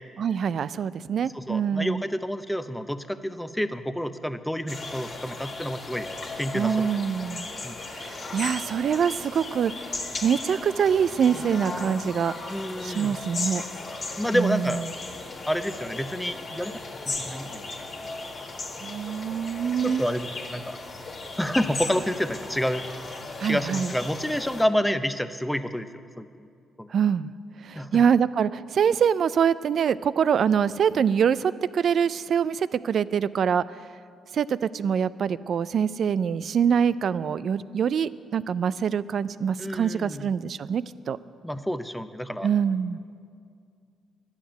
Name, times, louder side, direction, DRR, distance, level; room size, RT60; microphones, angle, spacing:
voice 1, 0.2-2.0 6.5-7.5 7.9-9.9 10.2-12.3 12.8-13.6 14.3-14.8 18.8-20.0 23.4-23.9 26.9-27.3 27.6-33.6 34.3-41.2 42.4-43.0, right 7 dB, 60° right, 17 dB, 0.3 m, -24 dB
voice 2, 1.3-6.1 6.4-6.8 7.6-7.8 12.5-13.2 14.2-14.8 15.5-16.8 17.1-17.6 18.0-18.1 19.8-20.8 21.4-23.1 23.4-25.9 26.2-26.5 26.8-26.9 27.8-28.0 39.6-40.3 41.4-42.5, equal, 5° left, 10 dB, 0.6 m, -29 dB
sound 1, 4.7-24.6, left 3 dB, 45° left, 1.7 m, -36 dB
11.5 x 7.3 x 8.9 m, 2.3 s
supercardioid pair, 70°, 0 cm